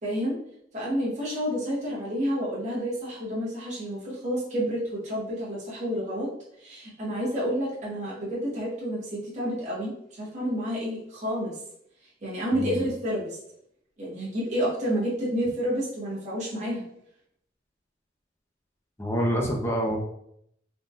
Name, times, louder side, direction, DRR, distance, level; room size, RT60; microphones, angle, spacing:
voice 1, 0.0-0.4 0.7-6.3 6.6-9.9 10.2-11.5 12.2-13.4 14.0-16.8, equal, 40° right, -6 dB, 0.9 m, -29 dB
voice 2, 12.5-12.8 19.0-20.0, equal, 15° left, 0 dB, 0.5 m, -27 dB
3.5 x 2.2 x 2.6 m, 0.73 s
head